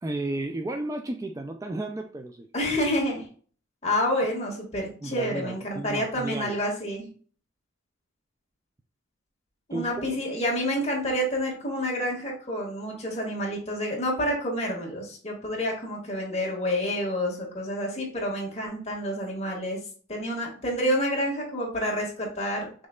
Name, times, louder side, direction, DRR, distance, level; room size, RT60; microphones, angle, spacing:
voice 1, 0.0-2.5 5.0-6.6 9.7-10.2, right 2 dB, 15° right, 5 dB, 0.3 m, -33 dB
voice 2, 2.5-3.3 3.8-7.1 9.7-19.8 20.1-22.9, equal, 35° left, -2 dB, 1.7 m, -28 dB
5.3 x 3.8 x 2.2 m, 0.43 s
head